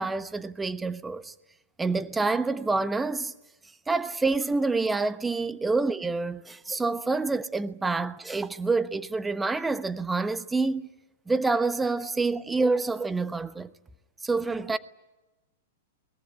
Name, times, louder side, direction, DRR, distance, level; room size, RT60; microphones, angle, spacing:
voice 1, 0.0-1.3 1.8-3.3 3.9-10.9 11.3-13.7 14.2-14.8, right 3 dB, 10° right, 1.1 m, -27 dB
22.5 x 21.5 x 9.9 m
figure-of-eight pair, 100°, 0 cm